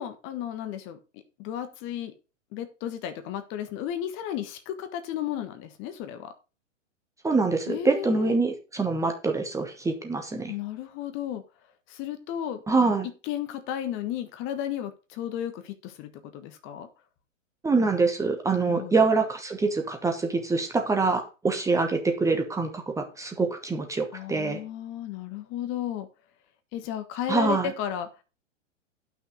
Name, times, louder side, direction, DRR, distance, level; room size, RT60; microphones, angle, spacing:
voice 1, 0.0-2.1 2.5-6.3 7.7-8.4 10.5-11.4 11.9-12.6 13.2-16.9 18.7-19.0 24.1-26.1 26.7-28.1, left 10 dB, 30° left, 8 dB, 1.4 m, -34 dB
voice 2, 7.2-10.5 12.7-13.1 17.6-24.6 27.3-27.7, right 3 dB, 10° right, 4 dB, 1.2 m, -25 dB
11.0 x 6.1 x 5.0 m, 0.31 s
figure-of-eight pair, 105°, 38 cm